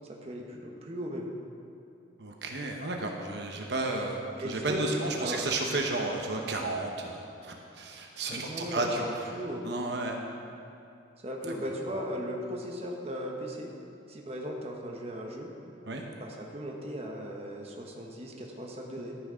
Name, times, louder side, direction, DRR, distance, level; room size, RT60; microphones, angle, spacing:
voice 1, 0.2-1.3 4.4-5.4 8.3-9.7 11.2-13.7 14.1-15.5 16.2-19.2, equal, 35° right, 0 dB, 0.9 m, -37 dB
voice 2, 2.2-9.3 9.6-10.2 15.9-16.0, right 2 dB, 65° right, 1 dB, 0.9 m, -32 dB
13.5 x 6.0 x 5.0 m, 2.6 s
head